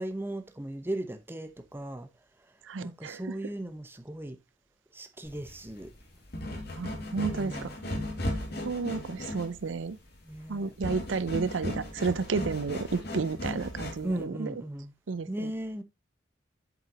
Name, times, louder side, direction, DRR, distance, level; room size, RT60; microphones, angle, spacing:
voice 1, 0.0-2.1 2.8-4.4 4.9-5.9 7.1-7.8 10.2-10.7 14.0-14.9 15.3-15.8, right 1 dB, 10° right, 0.9 m, -37 dB
voice 2, 2.6-3.3 6.8-7.7 8.6-10.0 10.5-14.5 15.1-15.5, right 4 dB, 80° right, 0.5 m, -32 dB
sound 1, 5.3-14.2, left 1 dB, 55° left, 2.2 m, -37 dB
7.8 x 7.7 x 2.9 m
head